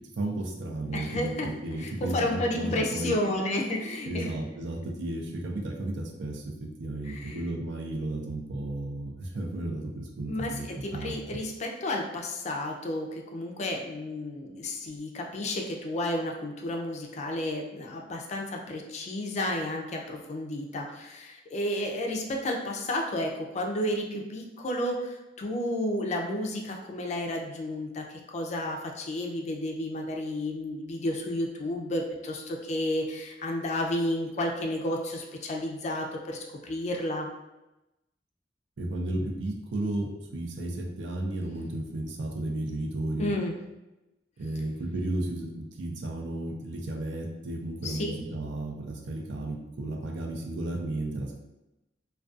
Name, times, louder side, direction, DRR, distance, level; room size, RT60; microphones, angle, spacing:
voice 1, 0.2-3.1 4.1-6.4 6.8-11.1 38.8-43.3 44.4-51.4, right 1 dB, 80° right, 1 dB, 0.4 m, -33 dB
voice 2, 0.9-1.5 1.8-4.3 7.1-7.4 10.3-37.3 43.2-43.6 47.8-48.1, left 1 dB, 40° left, 1 dB, 0.3 m, -32 dB
2.3 x 2.2 x 2.5 m, 0.97 s
head